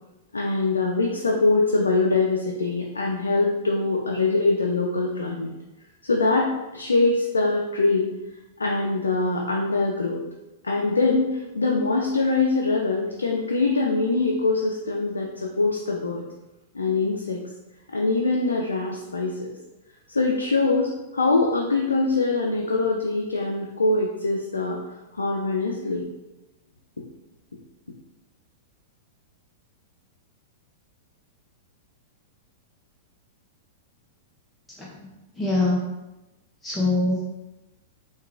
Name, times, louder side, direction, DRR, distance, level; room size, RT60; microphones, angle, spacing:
voice 1, 0.3-5.5 6.0-8.1 8.6-10.2 10.6-16.2 16.7-17.4 17.9-19.5 20.1-24.8 25.1-26.1, left 3 dB, 85° left, -1 dB, 0.4 m, -23 dB
voice 2, 34.8-35.8 36.6-37.2, left 2 dB, 10° left, -3 dB, 0.6 m, -24 dB
4.5 x 2.3 x 2.4 m, 1.0 s
figure-of-eight pair, 100°, 0 cm